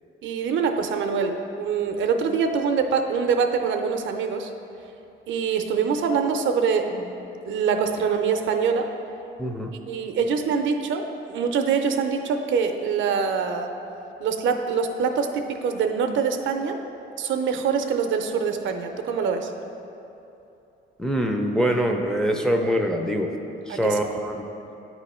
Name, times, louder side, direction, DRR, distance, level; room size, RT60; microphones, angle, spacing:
voice 1, 0.2-4.5 5.3-7.2 7.5-8.9 9.9-13.7 14.2-16.8 17.2-19.5 23.7-24.0, right 6 dB, 75° right, 6 dB, 0.5 m, -24 dB
voice 2, 9.4-9.7 21.0-23.3 23.7-24.4, equal, 5° left, 3 dB, 0.5 m, -24 dB
8.8 x 3.1 x 4.2 m, 2.8 s
cardioid pair, 90°, 20 cm